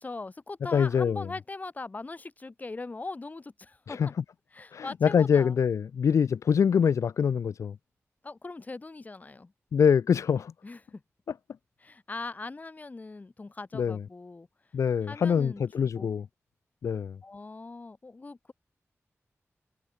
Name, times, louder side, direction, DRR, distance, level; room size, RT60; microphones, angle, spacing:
voice 1, 0.0-4.0 4.5-5.6 8.2-9.5 10.6-11.0 11.8-14.5 15.0-16.1 17.2-18.5, left 3 dB, 30° left, 4.1 m, -40 dB
voice 2, 0.7-1.3 3.9-4.1 4.7-7.8 9.7-10.5 13.7-14.0 14.7-16.2 16.8-17.2, left 7 dB, 85° left, 0.4 m, -24 dB
wide cardioid pair, 145°, 5 cm